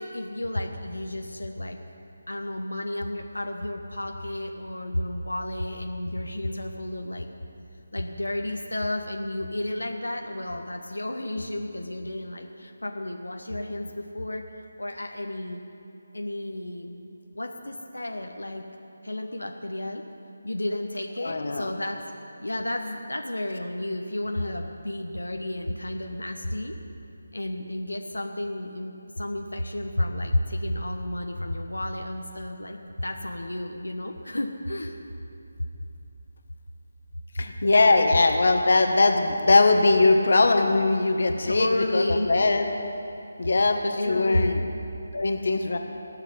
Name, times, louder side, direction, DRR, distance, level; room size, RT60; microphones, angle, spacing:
voice 1, 0.0-1.8 2.3-7.3 7.9-15.6 16.1-17.0 17.3-18.6 19.0-20.0 20.4-22.0 22.4-26.7 27.3-35.0 41.5-42.3 44.0-44.7, left 1 dB, 90° left, 3 dB, 1.2 m, -32 dB
voice 2, 21.2-21.7 37.4-42.7 43.4-44.7 45.1-45.8, left 3 dB, 60° left, 4 dB, 1.6 m, -21 dB
16.0 x 8.1 x 9.8 m, 3.0 s
figure-of-eight pair, 155°, 0 cm